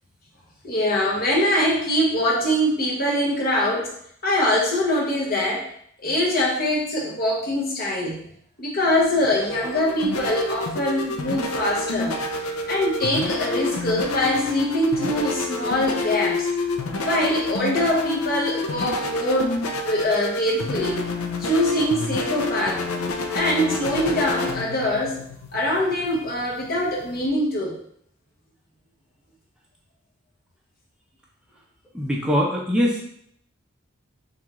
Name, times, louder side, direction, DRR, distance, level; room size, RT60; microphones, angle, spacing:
voice 1, 0.6-3.9 4.2-5.7 6.0-8.2 8.6-12.2 12.4-16.5 17.0-19.6 19.8-21.0 21.4-22.8 23.3-25.2 25.5-27.8, left 1 dB, 45° left, -3 dB, 1.1 m, -23 dB
sound 1, 9.0-27.3, left 2 dB, 90° left, 0.5 m, -28 dB
voice 2, 31.9-33.0, equal, 5° right, -3 dB, 0.6 m, -22 dB
5.9 x 2.4 x 3.0 m, 0.67 s
head